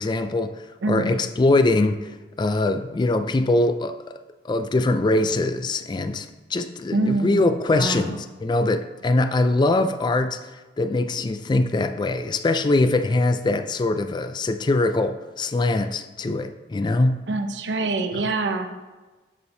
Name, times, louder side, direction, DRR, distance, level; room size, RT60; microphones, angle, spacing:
voice 1, 0.0-4.1 4.5-6.3 6.5-10.5 10.8-17.2, left 2 dB, 25° left, 10 dB, 0.3 m, -22 dB
voice 2, 0.8-1.2 6.9-8.2 17.3-18.7, right 3 dB, 80° right, 7 dB, 0.7 m, -25 dB
8.2 x 6.9 x 2.7 m, 1.2 s
head